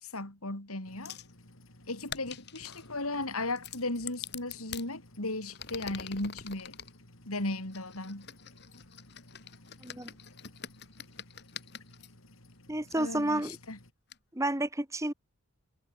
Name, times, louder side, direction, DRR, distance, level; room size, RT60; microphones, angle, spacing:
voice 1, 0.0-1.2 1.9-6.8 7.3-8.3 13.0-13.8, left 2 dB, 85° left, 5.4 m, -36 dB
sound 1, 0.8-13.9, left 1 dB, 70° left, 5.1 m, -56 dB
sound 2, 1.0-1.3 2.0-2.9 3.6-4.9 5.5-6.9 7.7-12.1 12.9-13.0 13.5-13.6 14.1-14.2, left 8 dB, 50° left, 2.5 m, -45 dB
voice 2, 12.7-13.6 14.3-15.1, right 1 dB, 15° right, 1.4 m, -30 dB
head